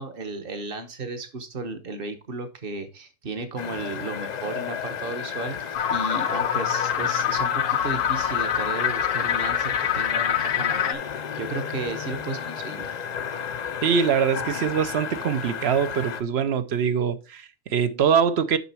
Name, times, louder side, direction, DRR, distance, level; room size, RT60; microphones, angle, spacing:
voice 1, 0.0-12.9, right 3 dB, 45° right, 1.2 m, -34 dB
sound 1, 3.6-16.2, left 7 dB, 50° left, 0.5 m, -33 dB
sound 2, 5.7-10.9, left 9 dB, 75° left, 1.1 m, -25 dB
voice 2, 13.8-18.6, right 7 dB, 60° right, 0.8 m, -23 dB
6.7 x 5.9 x 4.3 m
omnidirectional pair, 1.4 m